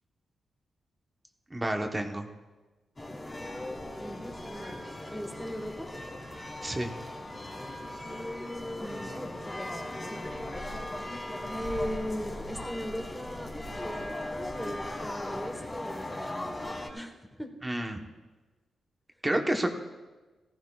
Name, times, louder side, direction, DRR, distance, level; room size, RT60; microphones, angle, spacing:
voice 1, 1.5-2.3 6.6-6.9 17.6-18.0 19.2-19.7, right 1 dB, 15° right, 3 dB, 1.0 m, -29 dB
sound 1, 3.0-16.9, left 1 dB, 20° left, 2.0 m, -38 dB
voice 2, 4.0-4.8 5.1-5.9 8.7-10.3 11.5-17.5, equal, 5° left, 4 dB, 1.3 m, -39 dB
17.0 x 15.0 x 2.4 m, 1.2 s
cardioid pair, 90°, 0 cm